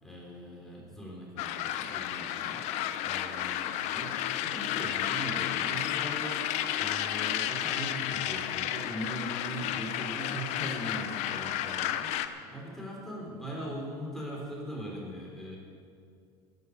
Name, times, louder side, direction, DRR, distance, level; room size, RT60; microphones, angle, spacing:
voice 1, 0.0-15.6, equal, 5° left, -4 dB, 4.6 m, -40 dB
sound 1, 1.4-12.3, left 12 dB, 60° left, 0.9 m, -32 dB
15.5 x 9.7 x 7.0 m, 2.3 s
supercardioid pair, 105°, 13 cm